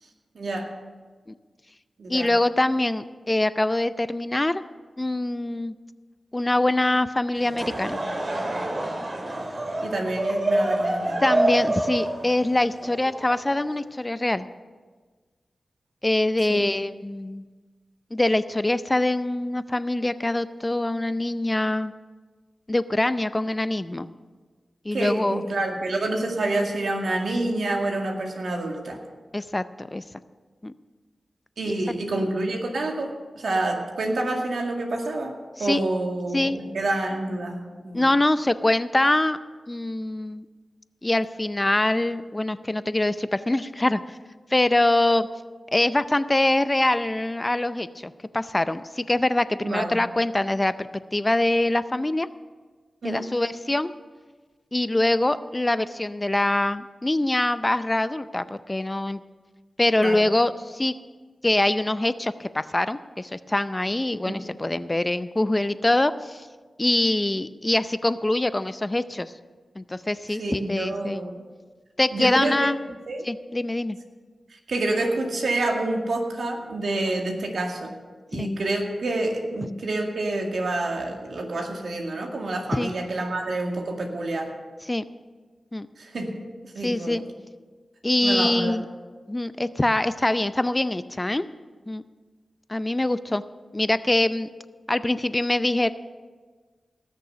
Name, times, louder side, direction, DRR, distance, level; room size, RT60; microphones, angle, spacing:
voice 1, 0.3-0.7 2.0-2.3 9.8-11.2 16.4-16.6 24.9-29.0 31.6-35.3 35.6-38.1 49.6-49.9 53.0-53.2 60.0-60.3 64.3-64.4 70.4-71.4 72.1-72.7 73.1-73.2 74.7-77.9 78.3-84.5 86.0-87.3 88.2-88.8, right 2 dB, 80° right, 2 dB, 2.0 m, -28 dB
voice 2, 2.1-4.6 5.0-5.7 6.3-8.0 11.2-14.5 16.0-17.4 18.1-21.9 22.7-24.1 24.8-25.4 29.3-30.0 30.6-30.7 32.1-32.3 35.6-35.8 36.3-36.6 37.9-39.4 39.7-40.5 41.0-44.0 44.5-45.3 45.7-52.3 53.0-53.9 54.7-59.2 59.8-60.9 61.4-66.5 66.8-69.3 69.8-71.2 72.0-72.8 73.2-74.0 78.3-78.5 82.7-82.9 84.9-85.0 85.7-85.9 86.8-87.2 88.0-88.9 89.3-91.5 91.9-92.0 92.7-93.4 93.7-94.5 94.9-95.9, left 1 dB, 25° left, 13 dB, 0.5 m, -24 dB
Laughter / Crowd, 7.4-13.8, right 1 dB, 45° right, 2.5 m, -27 dB
18.0 x 6.8 x 6.8 m, 1.4 s
cardioid pair, 65°, 0 cm